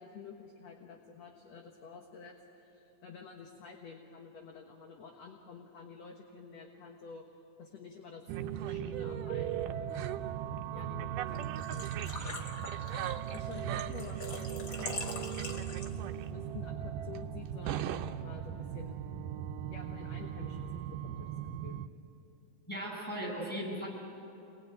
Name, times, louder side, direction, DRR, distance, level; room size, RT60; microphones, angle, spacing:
voice 1, 0.0-7.2 7.6-8.4 8.6-10.3 10.7-12.6 13.3-19.0 19.7-21.8, left 5 dB, 60° left, 2 dB, 2.3 m, -50 dB
sound 1, 8.3-21.9, right 10 dB, 75° right, 2.2 m, -38 dB
Engine / Trickle dribble / Fill (with liquid), 11.3-16.2, left 2 dB, 35° left, 1.5 m, -43 dB
voice 2, 22.7-23.9, right 1 dB, ahead, -1 dB, 7.8 m, -37 dB
27.0 x 21.0 x 9.4 m, 3.0 s
omnidirectional pair, 3.9 m